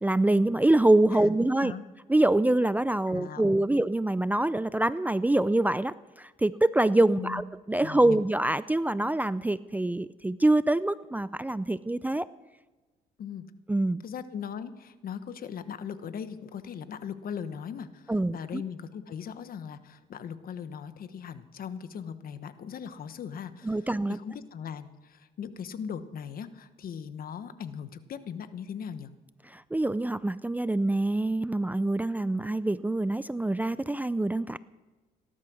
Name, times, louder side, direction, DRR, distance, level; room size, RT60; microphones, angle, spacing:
voice 1, 0.0-1.7 2.1-12.3 13.7-14.0 18.1-18.6 23.6-24.2 29.5-34.6, right 2 dB, 10° right, 16 dB, 0.4 m, -25 dB
voice 2, 1.1-1.9 3.1-3.6 7.2-7.4 7.8-8.2 13.2-13.4 14.0-29.1, left 7 dB, 60° left, 11 dB, 1.2 m, -39 dB
18.5 x 11.5 x 6.3 m, 1.2 s
cardioid pair, 85°, 17 cm